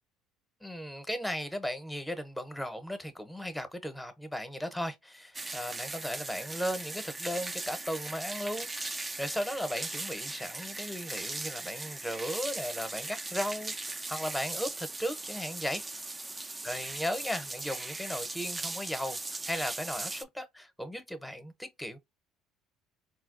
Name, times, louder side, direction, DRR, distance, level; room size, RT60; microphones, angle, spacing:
voice 1, 0.6-8.7 9.2-15.9 16.6-22.0, equal, 5° left, 0.8 m, -36 dB
sound 1, 5.3-20.2, right 2 dB, 15° right, 0.4 m, -39 dB
4.1 x 2.2 x 2.5 m
supercardioid pair, 85°, 0 cm